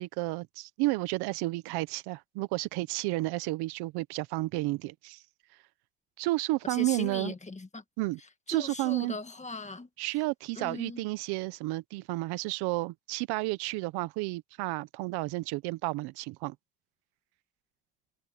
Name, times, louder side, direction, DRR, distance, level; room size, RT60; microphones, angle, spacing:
voice 1, 0.0-5.2 6.2-7.3 8.0-8.2 8.5-9.2 10.0-16.5, right 21 dB, 85° right, 1.0 m, -31 dB
voice 2, 6.7-7.8 8.5-9.9 10.6-11.0, left 3 dB, 20° left, 1.9 m, -39 dB
supercardioid pair, 90°, 38 cm